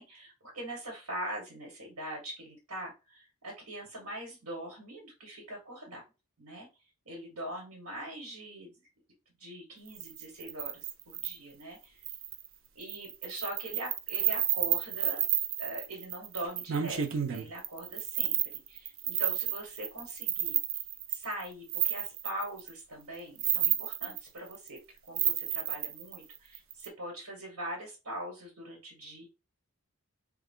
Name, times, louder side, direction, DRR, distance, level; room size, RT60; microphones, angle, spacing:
voice 1, 0.0-6.0 6.4-6.7 7.0-8.8 9.4-12.0 12.7-15.2 15.6-18.4 18.7-20.6 21.1-24.8 25.1-29.2, right 1 dB, 85° right, -1 dB, 1.5 m, -42 dB
sound 1, 9.9-11.3 12.0-12.5 12.8-22.7 23.2-24.8 25.1-26.9, right 10 dB, 60° right, 0.5 m, -31 dB
3.4 x 2.3 x 3.7 m, 0.29 s
head